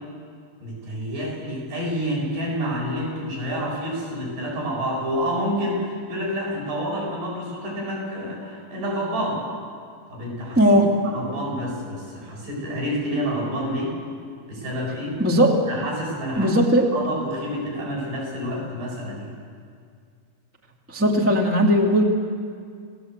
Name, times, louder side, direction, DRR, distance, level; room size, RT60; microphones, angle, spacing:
voice 1, 0.6-9.5 10.1-10.6 11.0-13.9 14.5-15.2 15.6-16.6 16.9-19.3, equal, 65° right, -4 dB, 9.4 m, -28 dB
voice 2, 10.5-10.9 15.2-15.5 16.3-16.9 20.9-22.0, equal, 15° right, 0 dB, 0.5 m, -18 dB
29.0 x 18.5 x 8.2 m, 2.2 s
omnidirectional pair, 5.1 m